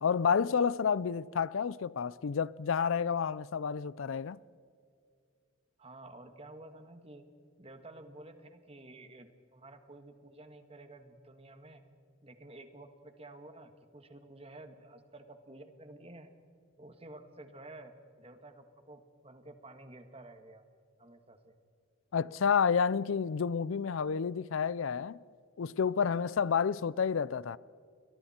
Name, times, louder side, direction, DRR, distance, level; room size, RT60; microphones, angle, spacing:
voice 1, 0.0-4.4 22.1-25.2 25.6-27.6, left 6 dB, 75° left, 0.4 m, -30 dB
voice 2, 5.8-7.2 7.6-11.8 12.2-16.3 16.8-20.6 21.0-21.6, right 2 dB, 30° right, 1.6 m, -51 dB
30.0 x 23.0 x 4.4 m
head